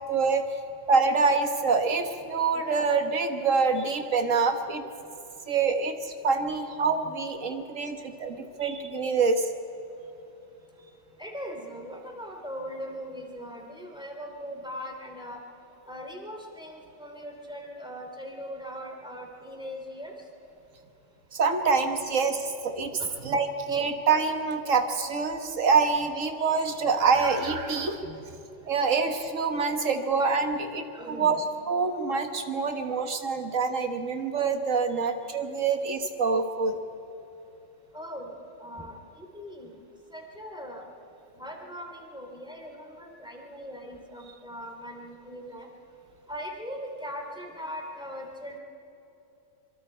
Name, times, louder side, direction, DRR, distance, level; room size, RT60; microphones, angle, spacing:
voice 1, 0.1-0.4 0.9-4.8 5.5-9.5 21.3-22.9 23.2-28.2 28.7-31.4 31.7-36.8, right 4 dB, 80° right, 6 dB, 1.8 m, -26 dB
voice 2, 11.1-20.3 20.7-20.8 23.0-23.1 28.5-29.0 30.9-31.3 37.9-39.8 40.1-40.9 41.2-48.6, equal, 5° right, 1 dB, 2.8 m, -40 dB
25.0 x 24.0 x 4.4 m, 2.9 s
omnidirectional pair, 1.3 m